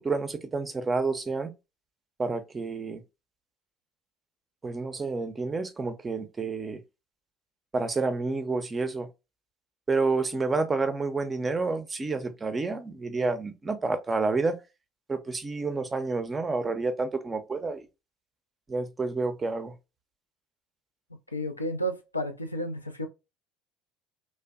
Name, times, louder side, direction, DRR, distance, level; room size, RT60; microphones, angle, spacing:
voice 1, 0.0-1.5 2.2-3.0 4.6-6.8 7.7-9.1 9.9-14.6 15.1-17.9 18.7-19.8, right 3 dB, 25° right, 0.5 m, -29 dB
voice 2, 21.3-23.1, equal, 90° left, 0.3 m, -32 dB
2.6 x 2.1 x 2.2 m
figure-of-eight pair, 60°, 0 cm